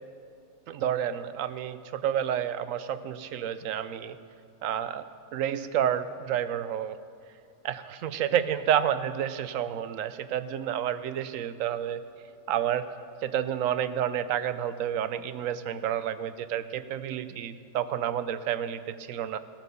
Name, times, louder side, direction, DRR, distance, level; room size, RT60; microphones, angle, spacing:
voice 1, 0.7-4.2 4.6-5.0 5.3-7.0 7.6-12.0 12.5-12.9 13.2-19.4, right 10 dB, 80° right, 13 dB, 1.0 m, -30 dB
16.0 x 8.9 x 6.7 m, 2.3 s
omnidirectional pair, 1.3 m